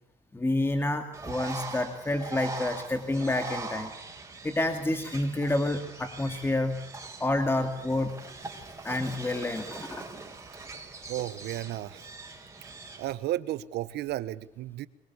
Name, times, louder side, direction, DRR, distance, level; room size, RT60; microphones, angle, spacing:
voice 1, 0.3-3.9 4.4-6.8 7.2-8.1 8.8-10.1, left 2 dB, 15° left, 7 dB, 2.3 m, -29 dB
Bird, 1.1-13.1, right 3 dB, 15° right, 5.1 m, -42 dB
voice 2, 11.1-12.0 13.0-14.9, right 14 dB, 75° right, 16 dB, 1.2 m, -33 dB
23.5 x 22.5 x 8.4 m, 0.72 s
cardioid pair, 110°, 17 cm